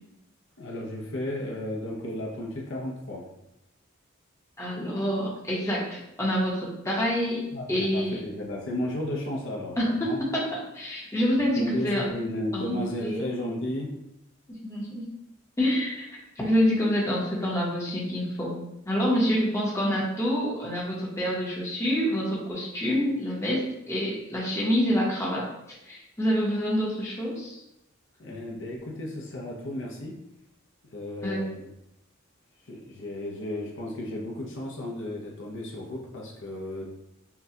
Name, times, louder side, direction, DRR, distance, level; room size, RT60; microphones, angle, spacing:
voice 1, 0.6-3.2 7.5-10.2 11.3-13.9 28.2-30.1 30.8-31.6 32.7-36.8, left 1 dB, 60° left, -2 dB, 0.8 m, -34 dB
voice 2, 4.6-7.4 7.7-8.2 9.8-12.0 12.5-13.2 14.5-15.1 15.6-18.6 18.9-25.5 25.9-27.6 31.2-31.4, equal, 15° left, -5 dB, 0.9 m, -27 dB
5.6 x 2.3 x 2.8 m, 0.87 s
head